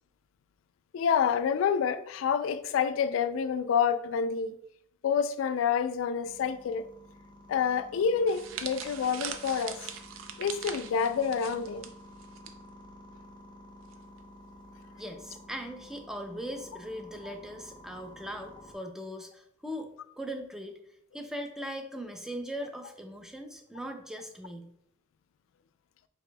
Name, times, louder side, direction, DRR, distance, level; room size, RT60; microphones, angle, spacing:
voice 1, 0.9-4.6 5.0-6.8 7.5-9.8 10.4-11.9 17.2-17.3, left 7 dB, 85° left, 0.3 m, -28 dB
sound 1, 6.2-18.7, left 1 dB, 25° left, 0.8 m, -52 dB
sound 2, 8.3-12.5 12.8-13.0 13.9-14.2, right 8 dB, 85° right, 0.5 m, -41 dB
voice 2, 15.0-19.9 20.2-20.8 21.1-24.7, equal, ahead, 0.4 m, -39 dB
4.9 x 4.1 x 2.2 m
head